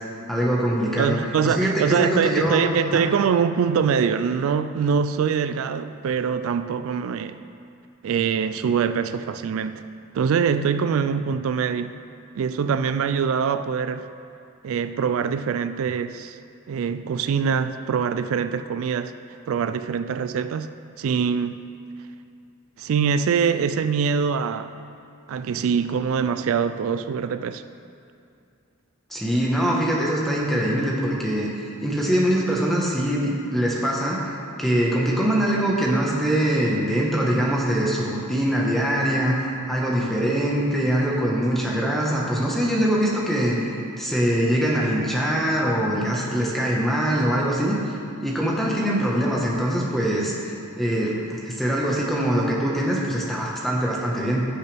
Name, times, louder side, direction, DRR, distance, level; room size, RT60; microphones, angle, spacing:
voice 1, 0.3-1.2 1.4-2.6 2.9-3.0 29.1-39.3 39.7-43.7 44.0-47.9 48.2-54.4, right 1 dB, ahead, -4 dB, 1.2 m, -23 dB
voice 2, 1.0-7.4 8.0-9.8 10.1-12.0 12.4-14.0 14.6-16.4 16.7-19.1 19.5-20.7 21.0-21.6 22.8-24.7 25.3-27.6, right 6 dB, 75° right, 11 dB, 0.3 m, -23 dB
15.0 x 6.6 x 3.4 m, 2.5 s
head